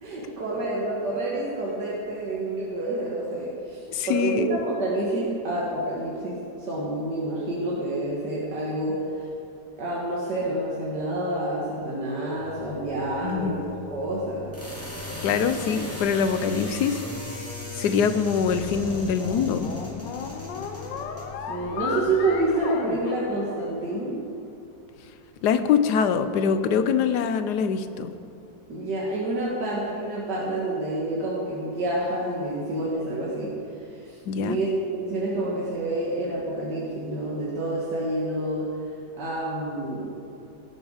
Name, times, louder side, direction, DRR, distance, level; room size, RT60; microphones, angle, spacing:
voice 1, 0.0-9.0 9.8-14.5 21.5-24.2 28.7-33.5 34.0-34.1 34.4-38.7 39.2-40.1, right 1 dB, 75° right, -6 dB, 2.3 m, -28 dB
voice 2, 3.9-4.5 13.2-13.6 15.2-17.0 17.8-19.7 25.4-28.1 34.3-34.6, left 6 dB, 70° left, 10 dB, 1.3 m, -24 dB
sound 1, 12.4-22.5, left 2 dB, 10° left, 2.5 m, -38 dB
sound 2, 18.5-24.0, left 6 dB, 90° left, 1.5 m, -35 dB
17.0 x 8.1 x 5.0 m, 2.7 s
omnidirectional pair, 1.9 m